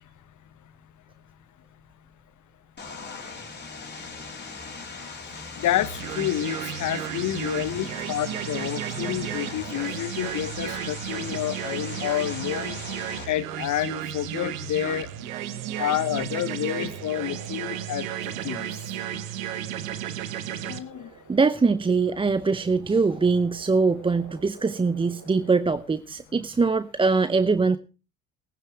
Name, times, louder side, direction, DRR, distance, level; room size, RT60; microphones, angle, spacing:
Vehicle, 2.8-13.2, left 4 dB, 25° left, 4.3 m, -39 dB
voice 1, 5.5-12.8 13.2-15.1 15.8-18.1 18.4-18.9 20.5-21.1, left 12 dB, 45° left, 1.3 m, -29 dB
sound 1, 5.8-20.8, right 11 dB, 75° right, 1.4 m, -33 dB
sound 2, 11.2-25.6, right 4 dB, 60° right, 6.0 m, -49 dB
voice 2, 21.3-27.8, right 4 dB, 15° right, 0.6 m, -22 dB
19.0 x 10.0 x 4.8 m
hypercardioid pair, 65°, 41 cm